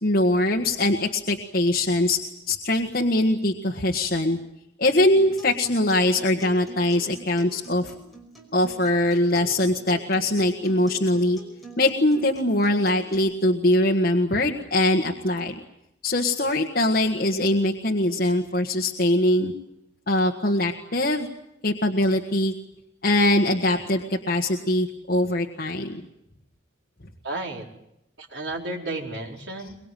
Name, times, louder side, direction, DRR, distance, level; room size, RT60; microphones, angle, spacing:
voice 1, 0.0-2.2 2.5-4.4 4.8-7.9 8.5-11.4 11.8-15.6 16.0-19.5 20.1-21.3 21.6-22.5 23.0-26.0, left 1 dB, 50° left, 1 dB, 1.6 m, -22 dB
Acoustic guitar, 5.2-13.1, right 1 dB, ahead, 5.2 m, -45 dB
voice 2, 27.2-27.7 28.2-29.8, right 2 dB, 60° right, 0 dB, 4.4 m, -32 dB
24.0 x 22.0 x 9.3 m, 0.84 s
head